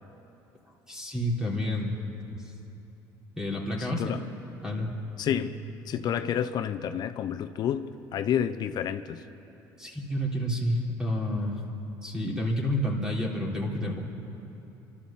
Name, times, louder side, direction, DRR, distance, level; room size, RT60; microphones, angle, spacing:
voice 1, 0.9-1.9 3.4-4.2 4.6-4.9 5.3-5.5 9.8-11.6 12.0-14.0, left 1 dB, 10° right, -2 dB, 3.6 m, -29 dB
voice 2, 3.8-4.2 5.2-5.6 5.9-9.2, left 9 dB, 55° left, 10 dB, 0.8 m, -29 dB
28.5 x 12.5 x 7.3 m, 2.9 s
cardioid pair, 105°, 8 cm